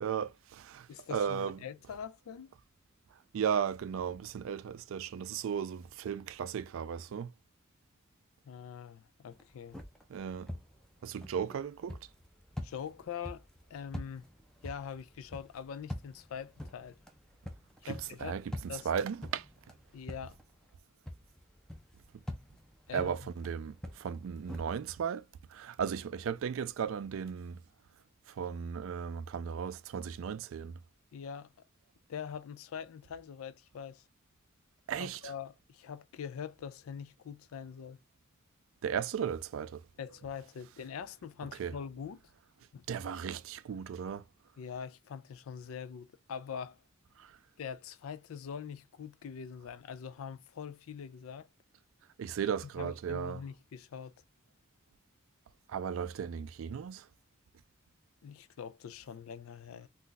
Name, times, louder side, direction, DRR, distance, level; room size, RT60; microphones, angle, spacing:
voice 1, 0.0-1.6 3.3-7.3 10.1-10.5 11.0-12.0 17.8-18.4 18.9-19.5 22.9-25.2 25.5-27.6 28.3-30.8 34.9-35.2 38.8-39.8 41.6-41.7 42.9-44.2 47.2-47.3 52.2-53.4 55.7-57.1, right 7 dB, 75° right, 0.3 m, -35 dB
voice 2, 0.9-2.5 8.4-9.8 12.6-13.5 13.7-14.3 14.6-17.0 17.8-18.4 18.7-18.9 19.9-20.4 22.9-23.2 31.1-31.5 32.1-34.0 35.0-38.0 40.0-42.2 42.7-42.8 44.6-46.8 47.6-51.5 52.8-54.1 58.2-59.9, left 7 dB, 90° left, 0.4 m, -43 dB
sound 1, 9.3-20.8 21.0-24.6, left 1 dB, 5° left, 0.5 m, -46 dB
2.6 x 2.2 x 3.8 m
head